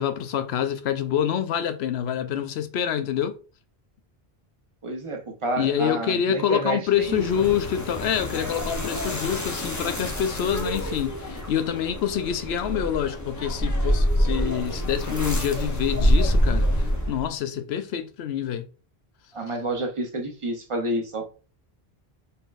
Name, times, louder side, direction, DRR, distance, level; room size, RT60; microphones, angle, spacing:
voice 1, 0.0-3.4 5.6-18.6, left 9 dB, 90° left, 0.9 m, -26 dB
voice 2, 4.8-7.5 19.3-21.3, right 2 dB, 35° right, 0.8 m, -29 dB
sound 1, 6.9-17.3, equal, 20° left, 0.7 m, -26 dB
4.1 x 3.6 x 2.5 m
omnidirectional pair, 1.0 m